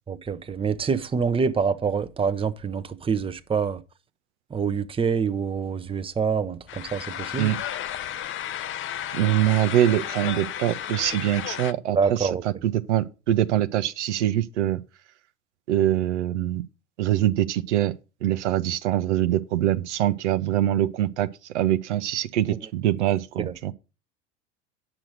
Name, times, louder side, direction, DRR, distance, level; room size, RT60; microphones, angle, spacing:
voice 1, 0.1-3.8 4.5-7.5 11.9-12.4 23.5-23.6, right 6 dB, 15° right, 0.8 m, -26 dB
sound 1, 6.7-11.7, left 11 dB, 35° left, 0.6 m, -33 dB
voice 2, 9.1-14.8 15.7-16.6 17.0-17.9 18.2-21.3 21.5-23.7, right 12 dB, 80° right, 0.8 m, -24 dB
8.9 x 6.1 x 6.4 m
hypercardioid pair, 80°, 35 cm